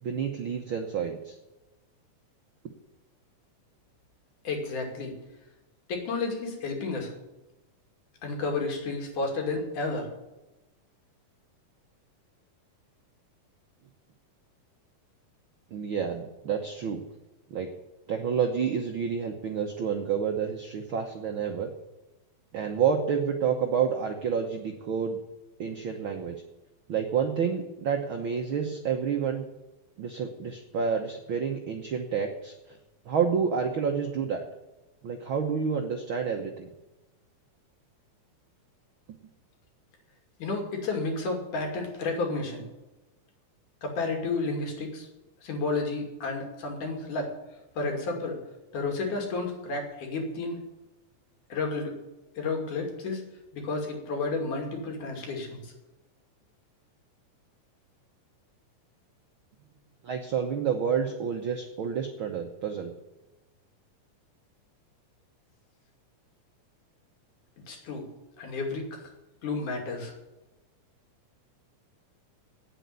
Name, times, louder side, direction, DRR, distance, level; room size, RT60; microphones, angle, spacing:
voice 1, 0.0-1.4 15.7-17.0 17.5-17.7 18.1-21.7 22.5-25.2 25.6-26.4 26.9-29.4 30.0-32.8 33.0-34.4 35.0-36.7 60.0-62.9, right 7 dB, 70° right, 4 dB, 1.2 m, -29 dB
voice 2, 4.4-5.1 5.9-7.1 8.2-10.1 40.4-42.6 43.8-45.1 45.4-47.3 47.8-48.4 48.7-50.6 51.5-52.0 52.3-53.2 53.5-55.7 67.7-68.1 68.4-69.1 69.4-70.1, left 3 dB, 70° left, 2 dB, 4.0 m, -31 dB
9.4 x 8.4 x 9.5 m, 1.0 s
omnidirectional pair, 3.7 m